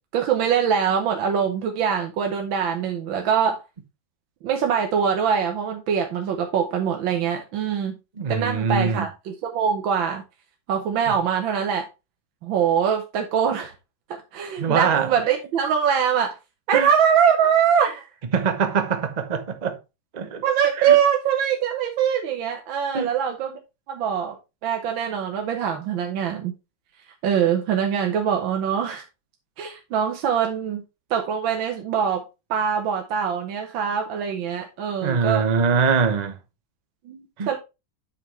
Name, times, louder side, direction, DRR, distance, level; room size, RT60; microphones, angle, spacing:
voice 1, 0.1-3.6 4.4-8.0 8.3-10.2 10.7-11.9 12.4-13.7 14.1-16.4 16.7-18.1 20.4-23.6 23.9-24.4 24.6-26.5 27.2-29.0 29.6-30.8 31.1-32.3 32.5-35.5 37.1-37.6, right 8 dB, 80° right, 1.7 m, -23 dB
voice 2, 8.2-9.1 14.6-15.1 16.7-16.9 18.3-19.8 20.1-20.4 20.8-21.0 22.9-23.1 35.0-36.4 37.4-37.5, right 5 dB, 35° right, 0.6 m, -23 dB
8.5 x 5.6 x 3.2 m
omnidirectional pair, 2.1 m